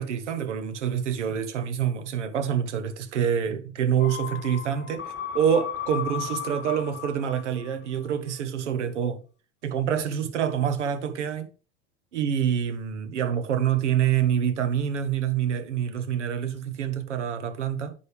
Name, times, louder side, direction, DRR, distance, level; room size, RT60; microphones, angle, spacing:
voice 1, 0.0-9.2 9.6-11.5 12.1-17.9, right 8 dB, 80° right, 1.1 m, -26 dB
sound 1, 4.0-7.7 8.0-8.1, left 9 dB, 30° left, 1.0 m, -35 dB
9.7 x 5.3 x 3.3 m
hypercardioid pair, 85°, 35 cm